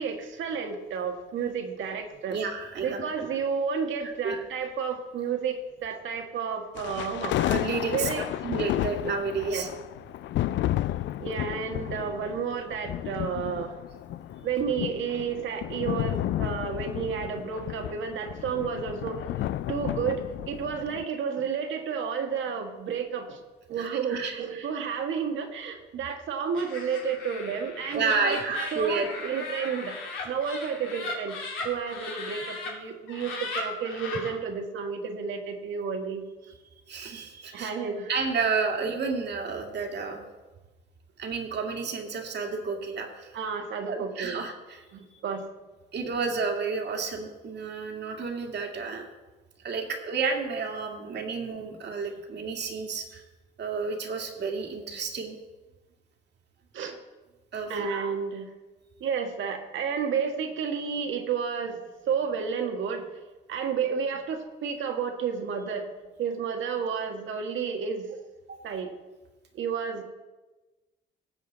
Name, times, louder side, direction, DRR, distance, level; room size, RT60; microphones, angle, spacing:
voice 1, 0.0-2.4 2.8-7.6 7.9-8.2 9.4-9.7 11.2-13.7 14.4-19.2 19.7-23.4 23.7-29.9 30.2-31.4 31.6-36.2 37.5-38.1 43.3-44.4 44.9-45.4 56.7-57.0 57.7-58.5 59.0-61.8 62.1-63.1 63.5-65.9 66.2-68.3 68.6-68.9 69.5-70.0, right 6 dB, 75° right, 4 dB, 1.6 m, -31 dB
voice 2, 2.3-3.3 4.2-4.4 7.4-8.1 8.4-9.7 23.8-24.3 27.9-29.1 36.9-37.7 38.1-40.2 41.2-43.4 43.9-44.8 45.9-49.1 49.6-53.2 53.6-55.4 57.5-57.7 68.5-68.6, right 4 dB, 60° right, 2 dB, 2.1 m, -31 dB
sound 1, 6.8-21.0, left 13 dB, 70° left, 0.4 m, -32 dB
Laughter, 26.5-32.7 33.1-34.3, left 3 dB, 85° left, 2.8 m, -37 dB
18.0 x 7.3 x 4.0 m, 1.2 s
cardioid pair, 90°, 20 cm